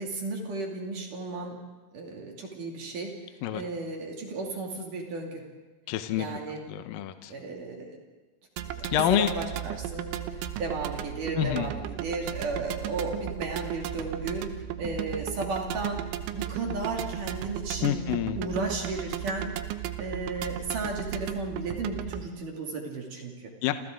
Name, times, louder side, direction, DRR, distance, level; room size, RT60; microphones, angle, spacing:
voice 1, 0.0-1.6 1.9-3.2 3.5-5.4 6.2-6.6 7.3-8.0 8.7-18.0 18.4-19.5 20.0-23.5, right 3 dB, 50° right, 0 dB, 3.7 m, -34 dB
voice 2, 5.9-6.3 6.7-7.3 8.9-9.3 11.4-11.7 17.8-18.4 23.6-23.7, left 12 dB, 75° left, 8 dB, 2.1 m, -27 dB
sound 1, 8.6-22.3, right 11 dB, 80° right, 3.2 m, -35 dB
29.0 x 28.5 x 3.8 m, 1.2 s
omnidirectional pair, 5.5 m